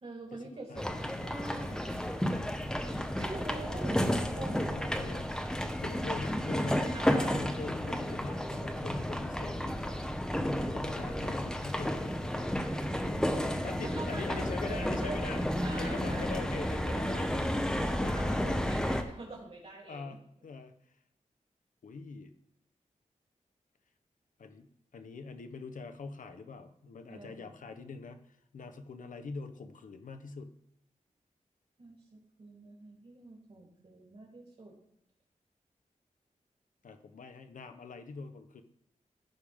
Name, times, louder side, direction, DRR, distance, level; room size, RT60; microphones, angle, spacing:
voice 1, 0.0-0.8 1.2-1.9 3.2-4.0 4.3-4.7 6.9-7.4 13.1-20.2 27.1-27.5 31.8-34.7, right 2 dB, 50° right, -2 dB, 3.3 m, -45 dB
sound 1, 0.8-19.0, equal, 5° left, 0.7 m, -32 dB
voice 2, 4.7-5.3 5.8-6.9 7.4-10.1 10.7-12.6 13.6-15.4 15.8-17.5 17.9-18.6 19.9-20.7 21.8-22.3 24.4-24.7 24.9-30.5 36.8-38.6, left 4 dB, 80° left, 8 dB, 0.9 m, -43 dB
15.5 x 5.1 x 3.6 m, 0.75 s
wide cardioid pair, 140°, 13 cm